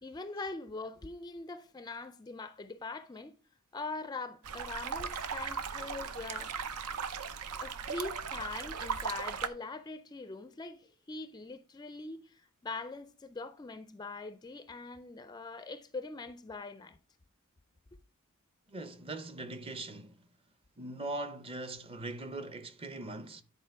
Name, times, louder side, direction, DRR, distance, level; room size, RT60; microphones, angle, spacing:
voice 1, 0.0-3.3 3.7-6.5 7.6-17.0, left 3 dB, 20° left, 0.4 m, -42 dB
sound 1, 4.4-9.5, right 6 dB, 80° right, 0.7 m, -37 dB
voice 2, 18.7-20.2 20.8-23.4, right 2 dB, 25° right, 0.7 m, -41 dB
10.0 x 4.3 x 4.6 m
head